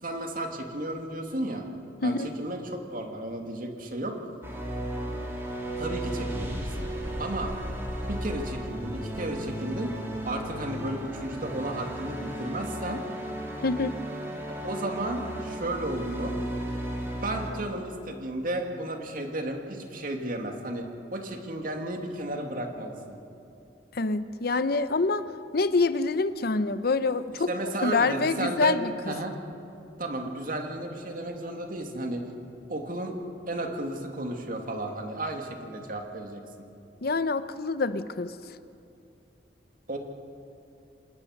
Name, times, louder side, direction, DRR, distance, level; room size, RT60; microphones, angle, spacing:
voice 1, 0.0-1.7 2.0-4.2 5.8-6.9 7.2-7.5 8.1-9.9 10.2-13.0 14.6-16.4 17.1-23.2 27.5-28.8 29.1-29.3 30.0-32.3 32.7-33.2 33.5-36.4 39.9-40.0, right 1 dB, 50° right, 3 dB, 2.5 m, -33 dB
sound 1, 4.4-17.5, right 1 dB, 15° right, 3.2 m, -34 dB
voice 2, 13.6-13.9 23.9-25.2 25.5-27.5 27.8-29.1 37.0-38.3, left 3 dB, 55° left, 12 dB, 0.7 m, -26 dB
26.5 x 19.5 x 6.6 m, 2.7 s
head